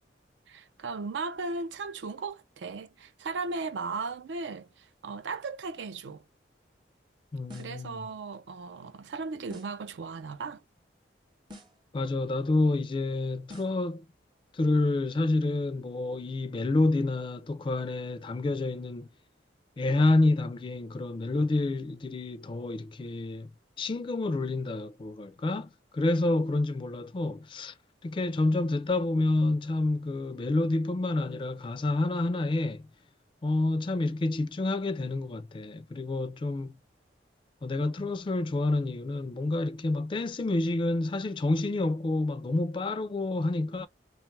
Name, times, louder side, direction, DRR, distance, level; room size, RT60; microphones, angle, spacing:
voice 1, 0.5-6.2 7.5-10.6, right 4 dB, 80° right, 0.4 m, -36 dB
voice 2, 7.3-8.1 11.9-14.0 14.5-19.1 19.8-23.5 23.8-27.7 28.0-32.9 33.4-36.8 37.6-43.9, left 2 dB, 30° left, 0.3 m, -28 dB
sound 1, 7.5-7.9 9.5-9.9 11.5-11.9 13.5-13.9, left 1 dB, 25° right, 0.7 m, -49 dB
2.8 x 2.2 x 3.1 m
head